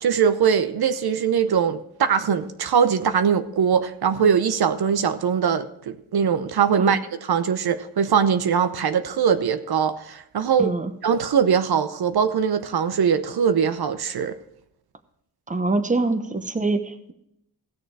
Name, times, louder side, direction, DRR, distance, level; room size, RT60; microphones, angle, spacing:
voice 1, 0.0-10.7 11.0-14.4, right 7 dB, 75° right, 10 dB, 0.7 m, -21 dB
voice 2, 10.6-10.9 15.5-17.1, right 3 dB, 20° right, 9 dB, 0.9 m, -24 dB
16.0 x 6.7 x 4.7 m, 0.76 s
wide cardioid pair, 95°, 38 cm